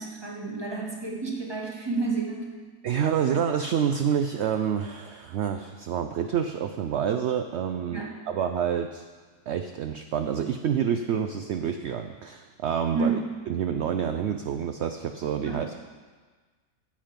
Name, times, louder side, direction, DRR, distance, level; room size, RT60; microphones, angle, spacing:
voice 1, 0.0-2.5 3.2-3.3 7.9-8.1 12.9-13.2 15.4-15.8, right 3 dB, 15° right, -1 dB, 1.5 m, -30 dB
voice 2, 2.8-9.0 9.5-13.2 13.5-15.8, right 8 dB, 70° right, 7 dB, 0.6 m, -28 dB
12.0 x 7.7 x 5.2 m, 1.4 s
omnidirectional pair, 1.7 m